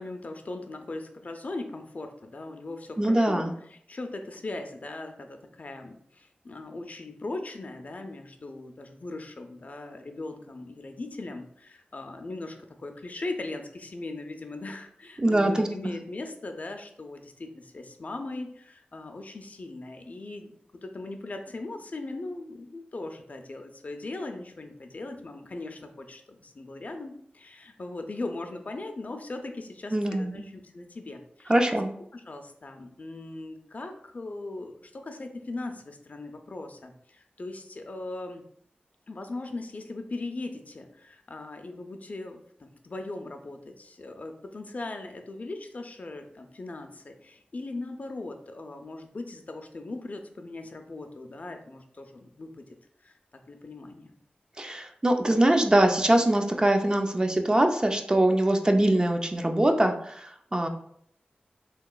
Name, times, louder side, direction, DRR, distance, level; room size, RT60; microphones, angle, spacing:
voice 1, 0.0-20.5 20.8-31.5 32.1-38.4 39.1-52.7 53.0-53.1 53.5-54.1, left 2 dB, 50° left, 5 dB, 0.4 m, -39 dB
voice 2, 3.0-3.5 15.2-15.9 29.9-30.5 31.5-31.9 54.6-60.7, right 1 dB, 25° right, 5 dB, 0.4 m, -23 dB
3.2 x 2.8 x 2.3 m, 0.68 s
wide cardioid pair, 55°, 3 cm